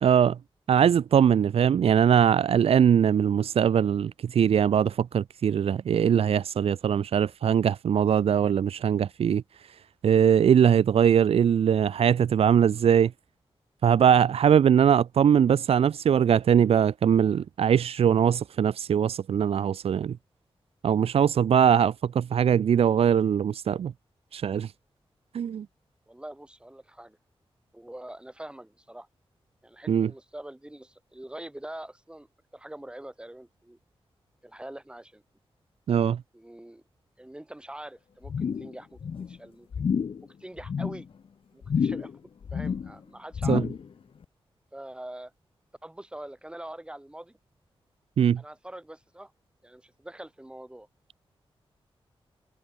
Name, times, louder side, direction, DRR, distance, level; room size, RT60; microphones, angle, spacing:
voice 1, 0.0-0.4 0.7-9.4 10.0-13.1 13.8-20.2 20.8-23.9 24.3-24.7 25.3-25.7 29.9-30.1 35.9-36.2 43.5-43.6 48.2-48.4, right 8 dB, 90° right, 0.6 m, -21 dB
voice 2, 26.1-27.2 27.7-29.1 29.6-32.3 32.5-33.8 34.4-35.2 36.3-36.8 37.2-39.0 39.3-39.9 40.2-41.1 41.5-42.1 42.5-43.7 44.7-45.3 45.8-47.3 48.4-49.3 49.6-50.9, right 1 dB, 10° right, 6.0 m, -43 dB
sound 1, 38.2-38.7 39.0-39.4 39.7-40.2 40.6-41.0 41.6-42.2 42.4-42.9 43.3-43.9 44.2-44.3, left 6 dB, 65° left, 1.9 m, -29 dB
wide cardioid pair, 130°, 10 cm